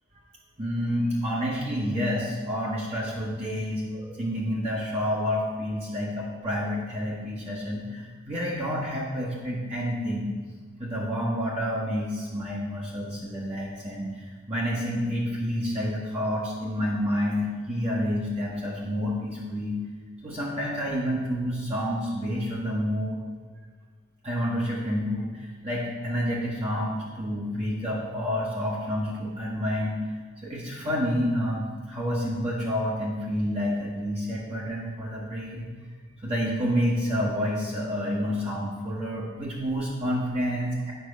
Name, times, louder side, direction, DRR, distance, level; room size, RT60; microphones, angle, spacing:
voice 1, 0.6-10.3 10.8-19.8 20.2-23.2 24.2-30.0 30.4-35.7 36.2-40.9, equal, 30° right, -5 dB, 1.3 m, -29 dB
9.3 x 5.6 x 5.2 m, 1.4 s
head